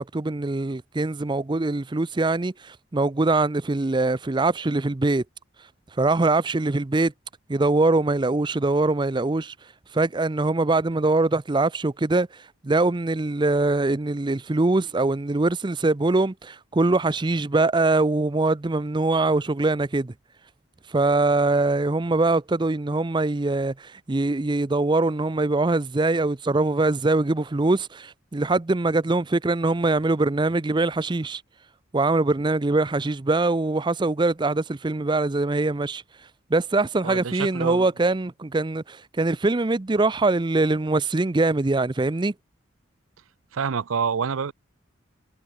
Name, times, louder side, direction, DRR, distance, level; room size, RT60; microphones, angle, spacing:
voice 1, 0.0-5.2 6.0-7.1 7.5-9.5 9.9-12.3 12.6-20.1 20.9-31.4 31.9-36.0 36.5-42.3, right 2 dB, 20° right, 0.5 m, -23 dB
voice 2, 37.0-37.9 43.5-44.5, right 6 dB, 75° right, 0.5 m, -27 dB
head